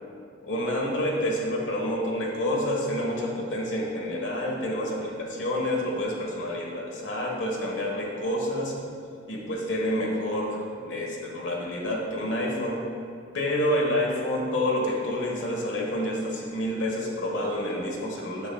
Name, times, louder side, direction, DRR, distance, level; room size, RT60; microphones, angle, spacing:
voice 1, 0.4-8.8 9.3-12.8 13.3-18.5, left 1 dB, 80° left, -1 dB, 1.3 m, -28 dB
8.3 x 7.2 x 2.3 m, 2.6 s
head